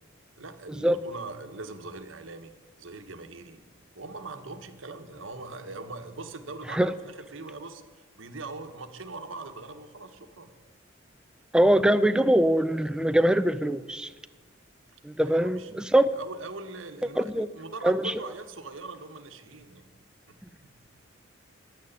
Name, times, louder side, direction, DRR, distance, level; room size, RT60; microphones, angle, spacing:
voice 1, 0.4-3.6 3.9-10.5 15.2-15.7 16.1-19.8 20.3-20.7, right 3 dB, 80° right, 8 dB, 1.2 m, -41 dB
voice 2, 11.5-14.1 15.0-16.1 17.2-17.5 17.8-18.1, right 1 dB, 5° right, 13 dB, 0.4 m, -22 dB
11.5 x 9.4 x 10.0 m, 1.4 s
head